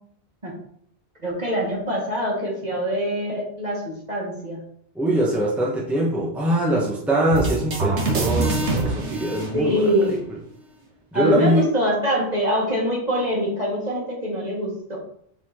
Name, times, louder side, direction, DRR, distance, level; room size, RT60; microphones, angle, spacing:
voice 1, 1.2-4.6 9.5-10.2 11.1-15.0, equal, 35° right, -3 dB, 2.2 m, -24 dB
voice 2, 4.9-10.2 11.1-11.7, right 1 dB, ahead, -4 dB, 1.3 m, -22 dB
sound 1, 7.3-10.2, right 2 dB, 75° right, 1.6 m, -25 dB
6.8 x 4.4 x 4.4 m, 0.67 s
omnidirectional pair, 1.2 m